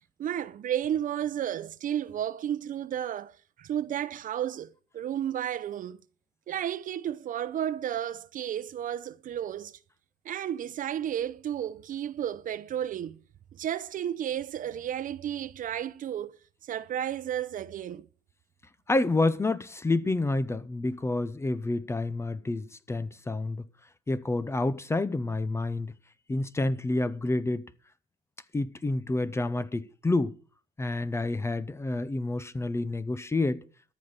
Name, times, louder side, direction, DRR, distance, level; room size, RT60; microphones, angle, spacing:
voice 1, 0.2-6.0 6.5-9.8 10.2-13.2 13.5-16.3 16.6-18.1, right 10 dB, 50° right, 0.7 m, -32 dB
voice 2, 18.9-23.6 24.1-25.9 26.3-27.7 28.5-30.4 30.8-33.6, left 2 dB, 15° left, 0.6 m, -28 dB
13.5 x 5.2 x 8.7 m
cardioid pair, 110°, 17 cm